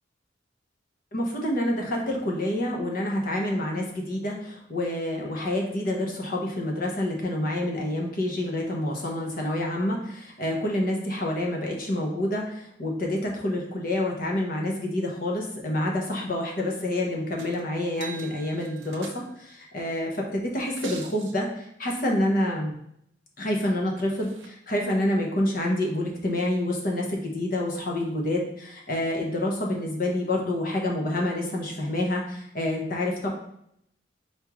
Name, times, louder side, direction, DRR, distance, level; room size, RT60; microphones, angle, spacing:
voice 1, 1.1-22.7 23.4-33.3, left 1 dB, 50° left, 0 dB, 0.9 m, -28 dB
sound 1, 17.4-17.6 17.9-19.5 20.5-21.3 23.5-23.6 24.0-24.5 25.4-25.5, right 5 dB, 90° right, 0.7 m, -44 dB
4.4 x 3.6 x 3.1 m, 0.72 s
head